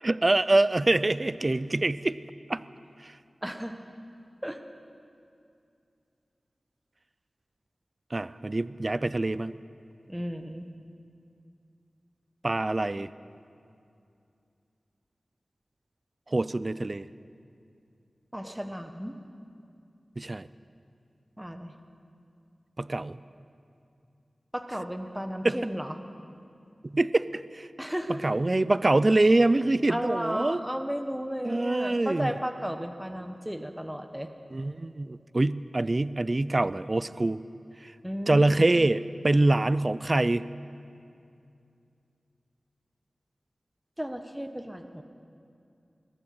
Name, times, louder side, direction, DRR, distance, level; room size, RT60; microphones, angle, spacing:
voice 1, 0.0-2.2 2.5-2.6 3.0-3.1 8.1-9.5 12.4-13.1 16.3-17.1 20.2-20.5 22.8-23.2 25.4-25.6 26.8-27.7 28.1-30.6 31.4-32.3 34.5-37.4 38.3-40.4, right 2 dB, 35° right, 16 dB, 0.5 m, -25 dB
voice 2, 3.4-3.7 4.4-4.6 10.1-10.6 18.3-19.1 21.4-21.7 24.5-25.9 27.8-28.2 29.9-34.3 38.0-38.6 44.0-45.0, equal, 5° right, 6 dB, 1.2 m, -34 dB
21.5 x 17.0 x 7.8 m, 2.5 s
wide cardioid pair, 70°, 0 cm